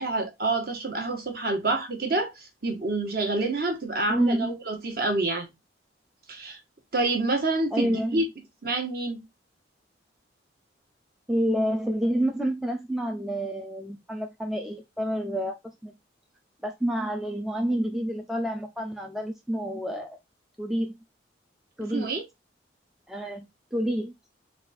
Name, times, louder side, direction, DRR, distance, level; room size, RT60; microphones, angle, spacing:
voice 1, 0.0-5.5 6.3-6.6 6.9-8.2 8.6-9.2 21.9-22.2, right 2 dB, 50° right, 1.2 m, -27 dB
voice 2, 4.1-4.6 7.7-8.2 11.3-15.6 15.8-15.9 16.6-20.2 20.6-20.9 21.8-22.1 23.1-24.1, equal, ahead, 0.3 m, -28 dB
4.0 x 2.4 x 4.1 m
head